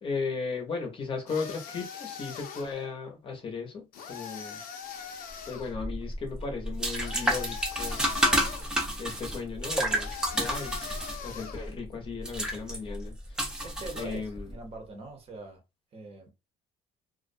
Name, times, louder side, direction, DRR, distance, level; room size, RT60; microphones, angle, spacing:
voice 1, 0.0-4.6 5.5-8.0 9.0-10.7 11.2-13.5 14.0-14.5, left 5 dB, 35° left, 0.7 m, -36 dB
sound 1, 1.3-2.8 3.9-5.7 6.9-8.7 9.9-11.7, left 7 dB, 70° left, 0.6 m, -42 dB
sound 2, 5.6-14.5, right 1 dB, 5° right, 0.5 m, -30 dB
voice 2, 13.6-15.6 15.9-16.3, right 3 dB, 40° right, 0.8 m, -42 dB
2.3 x 2.1 x 2.5 m
cardioid pair, 125°, 16 cm